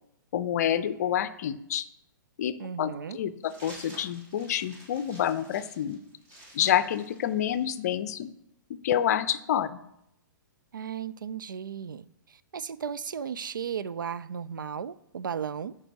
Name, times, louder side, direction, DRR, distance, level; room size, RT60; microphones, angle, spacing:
voice 1, 0.3-1.8 2.4-6.0 6.5-8.3 8.7-9.7, left 10 dB, 50° left, 0.5 m, -28 dB
voice 2, 2.6-3.2 10.7-15.7, right 7 dB, 75° right, 0.4 m, -35 dB
sound 1, 3.4-7.9, right 1 dB, 30° right, 3.0 m, -50 dB
14.0 x 4.8 x 2.9 m
figure-of-eight pair, 115°, 11 cm